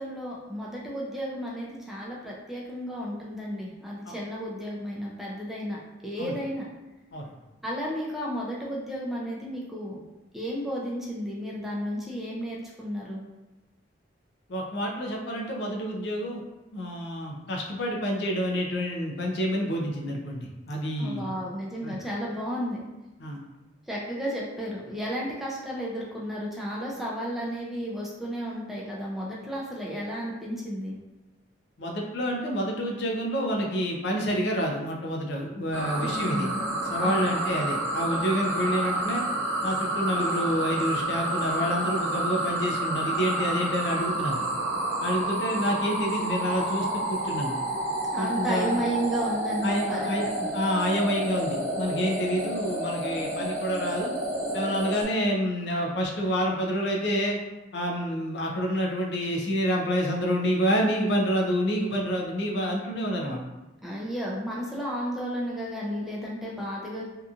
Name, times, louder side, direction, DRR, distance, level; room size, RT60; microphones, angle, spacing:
voice 1, 0.0-6.7 7.6-10.0 10.3-13.2 21.0-22.9 23.9-30.9 36.0-36.7 37.0-37.4 48.1-50.1 50.4-50.6 63.8-67.0, equal, ahead, -5 dB, 0.4 m, -33 dB
voice 2, 14.5-16.4 16.7-21.2 21.8-21.9 23.2-23.4 31.8-36.5 36.9-39.2 39.6-44.4 45.0-47.6 48.2-48.8 49.6-54.1 54.5-57.4 57.7-63.4, equal, 65° left, 0 dB, 0.5 m, -28 dB
sound 1, 35.7-55.0, right 1 dB, 85° right, 0.8 m, -29 dB
2.8 x 2.4 x 2.4 m, 1.0 s
head